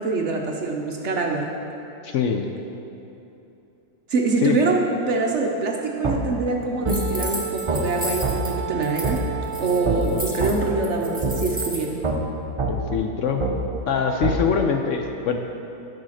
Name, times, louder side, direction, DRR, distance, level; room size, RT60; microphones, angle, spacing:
voice 1, 0.0-1.5 4.1-9.2 9.6-12.0, right 3 dB, 60° right, 1 dB, 0.8 m, -24 dB
voice 2, 2.0-2.4 4.4-4.6 12.7-13.4 13.9-15.4, left 6 dB, 70° left, 4 dB, 0.7 m, -23 dB
sound 1, 6.0-6.2 6.8-7.0 7.7-7.8 8.2-8.4 9.0-9.2 9.8-10.0 10.4-10.5 11.2-11.3 12.0-12.2 12.6-12.7 13.4-13.5 14.2-14.4, right 4 dB, 40° right, 0.4 m, -23 dB
sound 2, 6.9-8.5 8.8-9.2 9.4-11.8, equal, 5° right, 1.1 m, -33 dB
Wind instrument woodwind instrument, 6.9-12.0, right 6 dB, 85° right, 1.2 m, -33 dB
11.5 x 4.9 x 6.3 m, 2.9 s
omnidirectional pair, 1.8 m